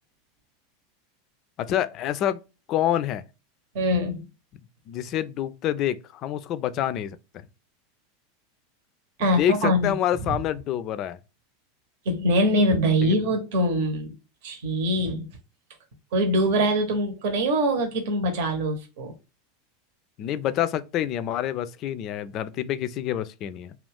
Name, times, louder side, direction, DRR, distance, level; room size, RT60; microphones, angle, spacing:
voice 1, 1.6-2.4 2.7-3.2 4.9-7.2 9.4-11.2 13.0-13.2 20.2-23.8, left 11 dB, 45° left, 0.3 m, -27 dB
voice 2, 3.7-4.2 9.2-9.9 12.0-14.1 14.4-15.3 16.1-19.1, equal, 65° right, 0.9 m, -23 dB
2.5 x 2.3 x 3.3 m
hypercardioid pair, 100°, 0 cm